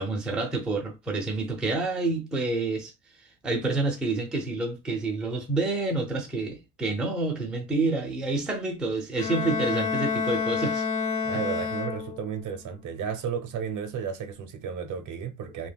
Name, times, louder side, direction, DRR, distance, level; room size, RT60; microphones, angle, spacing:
voice 1, 0.0-2.9 3.4-10.9, right 3 dB, ahead, 0.4 m, -28 dB
Bowed string instrument, 9.2-12.4, left 5 dB, 55° left, 0.9 m, -29 dB
voice 2, 11.2-15.7, right 7 dB, 50° right, 0.6 m, -33 dB
2.2 x 2.2 x 3.3 m
cardioid pair, 130°, 40 cm